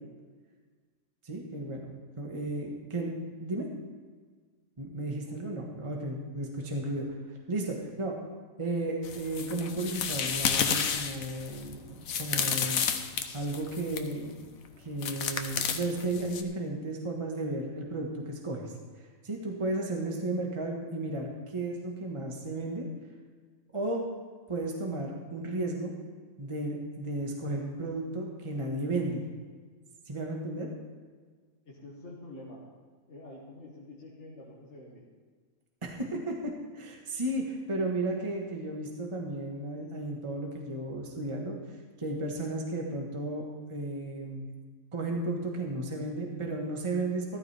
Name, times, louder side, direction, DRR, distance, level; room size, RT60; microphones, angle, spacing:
voice 1, 1.2-3.7 4.8-8.2 8.6-12.9 13.1-14.4 14.8-22.9 23.7-24.0 24.5-25.9 26.4-29.2 30.1-30.7 35.8-41.6 42.0-44.5 44.9-47.4, right 2 dB, 20° right, 0 dB, 1.4 m, -34 dB
sound 1, 9.0-14.1 15.0-16.4, left 7 dB, 75° left, 1.3 m, -31 dB
voice 2, 31.7-32.6 33.1-35.0, left 1 dB, 55° left, -5 dB, 2.1 m, -47 dB
14.0 x 14.0 x 3.4 m, 1.5 s
omnidirectional pair, 1.5 m